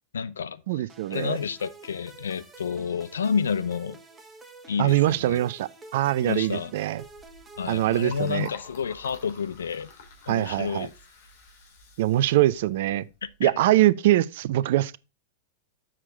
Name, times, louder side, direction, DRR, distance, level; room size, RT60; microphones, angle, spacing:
voice 1, 0.1-0.8 1.1-4.0 4.7-5.4 6.2-6.7 7.6-9.9 10.3-10.9 13.4-13.5, left 6 dB, 75° left, 0.6 m, -30 dB
voice 2, 0.7-1.4 4.8-7.0 7.7-8.5 10.3-10.9 12.0-13.1 13.4-15.0, right 14 dB, 60° right, 0.5 m, -23 dB
sound 1, 0.9-9.2, right 2 dB, 15° right, 1.6 m, -49 dB
Liquid, 7.0-13.5, left 4 dB, 60° left, 2.8 m, -49 dB
7.4 x 6.4 x 3.7 m
figure-of-eight pair, 95°, 0 cm